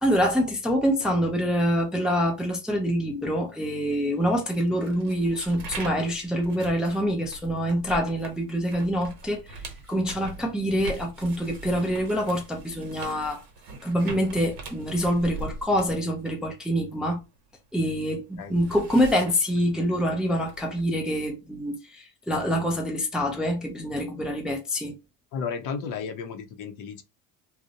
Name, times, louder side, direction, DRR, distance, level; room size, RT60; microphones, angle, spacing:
voice 1, 0.0-9.6 9.9-13.4 13.8-17.2 17.7-24.9, equal, ahead, 0.4 m, -26 dB
sound 1, 4.3-17.8 18.1-20.8, right 3 dB, 55° right, 1.0 m, -42 dB
voice 2, 25.3-27.0, left 6 dB, 50° left, 0.6 m, -33 dB
2.5 x 2.0 x 2.7 m
supercardioid pair, 110°, 42 cm